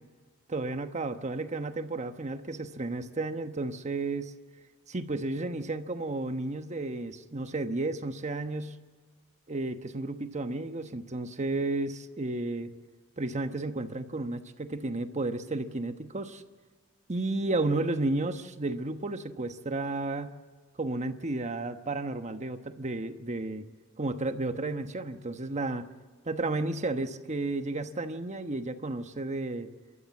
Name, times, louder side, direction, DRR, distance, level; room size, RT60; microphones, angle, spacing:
voice 1, 0.5-4.3 4.9-8.7 9.5-12.7 13.2-16.4 17.1-20.3 20.8-23.6 24.0-25.9 26.3-29.7, right 2 dB, 35° right, 8 dB, 1.1 m, -32 dB
29.5 x 13.5 x 7.2 m, 1.5 s
head